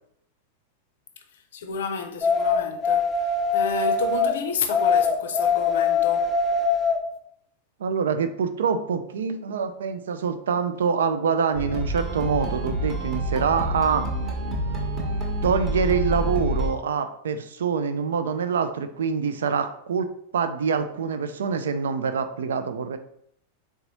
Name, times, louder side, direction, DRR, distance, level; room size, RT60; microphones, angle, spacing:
voice 1, 1.5-6.3, left 5 dB, 60° left, 0.5 m, -31 dB
sound 1, 2.2-4.3 4.7-7.0, left 5 dB, 10° left, 0.5 m, -22 dB
voice 2, 7.8-14.1 15.4-23.0, right 6 dB, 65° right, 0.3 m, -25 dB
sound 2, 11.5-16.7, right 1 dB, 25° right, 1.0 m, -28 dB
3.9 x 3.5 x 2.9 m
figure-of-eight pair, 90°, 0 cm